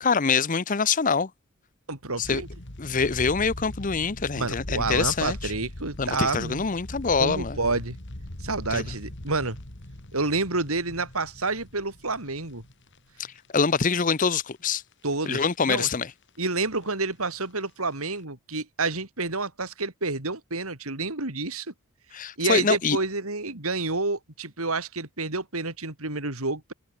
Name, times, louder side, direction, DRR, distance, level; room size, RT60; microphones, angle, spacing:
voice 1, 0.0-1.3 2.2-2.4 2.8-5.5 6.0-7.6 8.7-8.8 13.5-14.8 15.3-16.1 22.1-23.0, left 5 dB, 40° left, 0.7 m, -25 dB
voice 2, 1.9-2.5 4.4-6.6 7.2-8.0 8.4-9.6 10.1-12.6 15.0-15.9 16.4-21.7 22.4-26.7, right 3 dB, 80° right, 4.2 m, -29 dB
sound 1, 2.2-13.7 14.1-14.2 14.7-15.5 15.8-16.0 16.3-17.6 17.9-18.2, left 1 dB, 55° left, 2.9 m, -40 dB
head